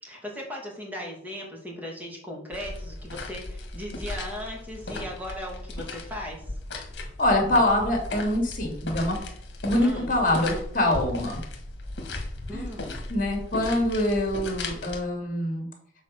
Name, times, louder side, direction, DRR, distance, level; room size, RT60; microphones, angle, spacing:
voice 1, 0.0-6.4 9.8-10.1 12.5-13.0, equal, 10° right, -2 dB, 2.5 m, -37 dB
sound 1, 2.5-15.0, left 2 dB, 70° left, 1.6 m, -36 dB
voice 2, 7.2-9.2 9.6-11.4 12.5-12.7 13.1-15.7, left 1 dB, 45° left, 2 dB, 2.4 m, -24 dB
7.4 x 4.3 x 6.3 m, 0.65 s
head